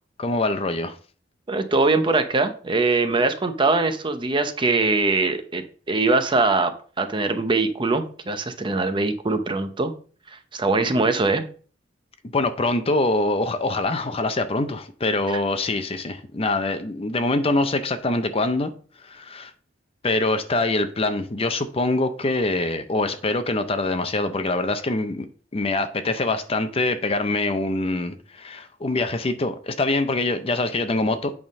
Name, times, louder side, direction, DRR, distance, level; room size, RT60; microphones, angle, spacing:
voice 1, 0.2-1.0 12.3-18.7 19.0-19.5 20.0-25.3 25.5-31.3, left 2 dB, 30° left, 0.6 m, -24 dB
voice 2, 1.5-9.9 10.3-11.4 15.3-15.4, right 3 dB, 25° right, 0.7 m, -22 dB
8.8 x 3.6 x 5.2 m
head